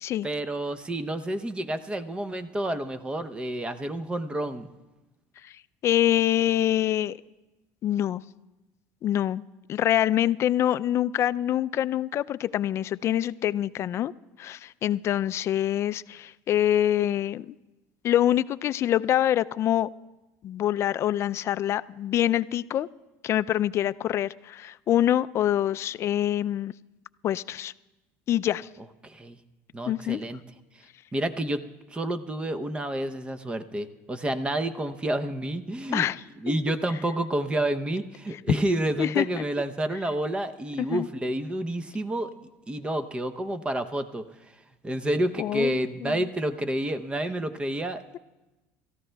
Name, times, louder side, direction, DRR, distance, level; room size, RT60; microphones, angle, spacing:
voice 1, 0.2-4.7 29.0-29.4 29.7-30.4 31.1-36.1 36.4-42.3 42.7-44.3 44.8-48.0, right 1 dB, 15° right, 11 dB, 0.7 m, -29 dB
voice 2, 5.8-7.2 7.8-8.2 9.0-9.4 9.7-14.1 14.4-17.6 18.0-19.9 20.4-22.9 23.2-26.7 27.2-27.7 28.3-28.7 29.9-30.2 35.9-36.2 39.0-39.4 40.8-41.1 45.4-46.3, left 12 dB, 45° left, 16 dB, 0.3 m, -25 dB
29.0 x 14.0 x 2.3 m, 1.1 s
supercardioid pair, 105°, 6 cm